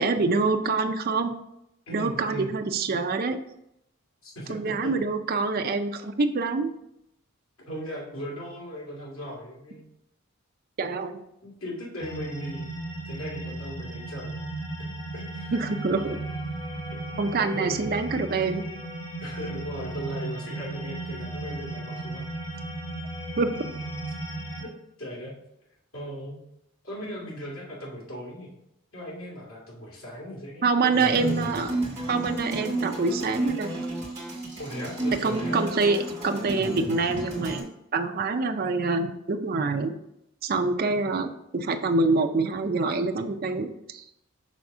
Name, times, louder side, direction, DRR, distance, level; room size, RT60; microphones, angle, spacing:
voice 1, 0.0-1.3 1.9-3.4 4.5-6.7 10.8-11.1 15.5-16.2 17.2-18.6 23.4-23.7 30.6-31.7 32.1-33.7 35.2-36.0 36.2-39.9 40.4-44.0, right 3 dB, 45° right, 5 dB, 0.5 m, -26 dB
voice 2, 1.9-2.5 4.2-4.9 7.7-9.9 11.4-12.7 13.0-14.4 15.1-15.6 17.1-17.9 19.2-22.2 22.5-22.7 24.6-24.7 25.0-25.3 25.9-26.4 26.8-28.5 28.9-31.5 34.6-35.6, equal, 70° left, -4 dB, 2.4 m, -38 dB
sound 1, 12.0-24.6, right 2 dB, 30° left, 2.3 m, -35 dB
sound 2, 30.9-37.6, right 1 dB, 20° right, 2.4 m, -32 dB
6.3 x 3.4 x 5.4 m, 0.81 s
head